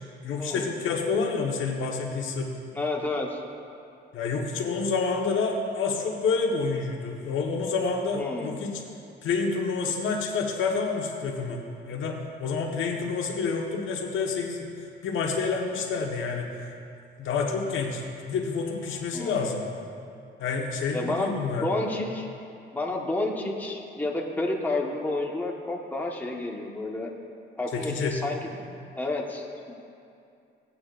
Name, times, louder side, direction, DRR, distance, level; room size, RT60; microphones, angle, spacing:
voice 1, 0.2-2.6 4.1-8.8 9.2-14.7 15.0-16.5 17.2-19.6 20.4-21.7 27.7-28.2, left 4 dB, 80° left, 1 dB, 1.3 m, -28 dB
voice 2, 2.7-3.4 8.1-8.6 19.1-19.5 20.9-22.3 22.7-27.1 27.6-28.6 29.0-29.4, left 2 dB, 10° left, -2 dB, 1.3 m, -30 dB
17.5 x 8.6 x 2.5 m, 2.5 s
cardioid pair, 90°, 20 cm